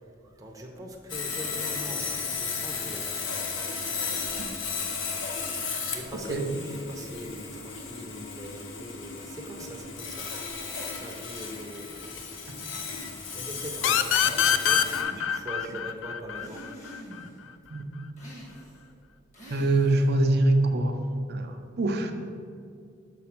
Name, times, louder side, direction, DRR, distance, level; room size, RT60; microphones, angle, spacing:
voice 1, 0.2-3.2 5.5-10.6 11.0-12.2 13.3-14.2 14.5-16.7, right 1 dB, 20° right, 0 dB, 0.6 m, -41 dB
Sawing, 1.1-15.0, left 5 dB, 90° left, 0.8 m, -35 dB
sound 1, 13.8-17.2, left 9 dB, 75° left, 0.3 m, -25 dB
sound 2, 14.7-15.5 16.3-17.4 18.2-18.9 19.3-20.1, equal, 40° left, 1.6 m, -45 dB
voice 2, 19.5-21.0 21.3-22.1, right 2 dB, 55° right, 6 dB, 0.6 m, -24 dB
6.1 x 3.9 x 5.9 m, 2.3 s
head